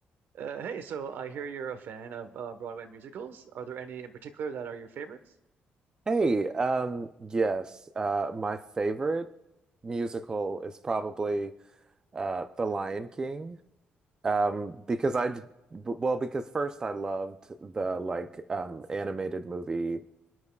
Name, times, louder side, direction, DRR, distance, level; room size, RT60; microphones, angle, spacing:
voice 1, 0.3-5.2, right 7 dB, 70° right, 10 dB, 1.2 m, -38 dB
voice 2, 6.1-9.3 9.8-11.5 12.1-13.6 14.2-15.4 15.7-17.3 17.6-20.0, right 3 dB, 20° right, 9 dB, 0.5 m, -30 dB
29.5 x 10.5 x 2.4 m, 0.97 s
cardioid pair, 165°, 4 cm